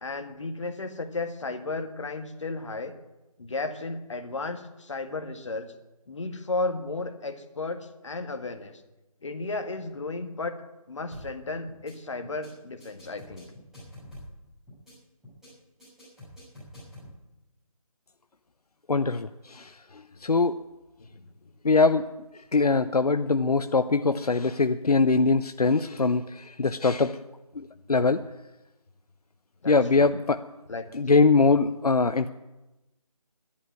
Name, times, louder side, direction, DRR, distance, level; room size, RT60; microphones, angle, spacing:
voice 1, 0.0-2.9 3.4-5.7 6.1-8.8 9.2-10.6 10.9-13.5 21.0-21.1 29.6-30.0 30.7-30.9, left 3 dB, 50° left, 7 dB, 1.7 m, -34 dB
sound 1, 11.1-11.4 11.7-11.9 12.2-12.5 12.8-14.4 14.7-14.9 15.2-15.5 15.8-17.1, left 1 dB, ahead, 6.3 m, -46 dB
voice 2, 18.9-19.7 20.2-20.6 21.6-22.1 22.5-27.2 27.6-28.2 29.7-30.4 30.9-32.3, left 4 dB, 85° left, 10 dB, 0.7 m, -22 dB
11.5 x 10.0 x 9.5 m, 1.0 s
figure-of-eight pair, 165°, 19 cm